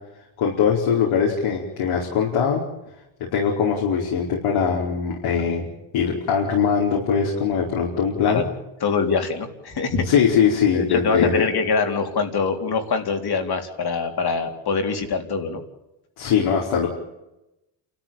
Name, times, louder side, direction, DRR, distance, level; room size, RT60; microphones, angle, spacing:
voice 1, 0.4-2.6 3.2-5.7 5.9-8.5 10.0-11.3 16.2-16.9, left 7 dB, 70° left, -1 dB, 4.8 m, -21 dB
voice 2, 8.8-10.1 10.7-15.6, left 4 dB, 50° left, 5 dB, 4.0 m, -24 dB
28.5 x 14.0 x 9.1 m, 0.94 s
cardioid pair, 95°, 50 cm